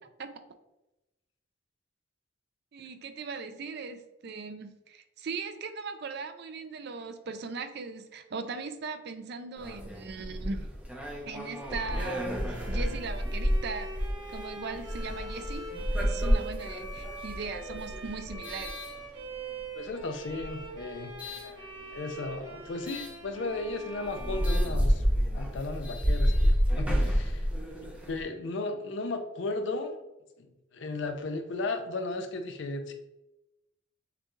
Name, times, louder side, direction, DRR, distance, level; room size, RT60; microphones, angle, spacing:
voice 1, 2.7-10.7 11.3-14.0 14.3-15.7 16.0-18.8, right 4 dB, 55° right, 9 dB, 0.4 m, -39 dB
sound 1, 9.6-19.6 20.2-21.5 22.9-23.1 23.7-23.8 24.0-28.2, equal, 5° right, 0.6 m, -30 dB
Bowed string instrument, 11.4-25.4, right 2 dB, 70° right, 1.6 m, -44 dB
voice 2, 19.7-25.0 25.3-27.5 27.8-30.0 30.4-32.9, left 2 dB, 60° left, 6 dB, 0.5 m, -35 dB
6.6 x 2.3 x 3.1 m, 0.96 s
head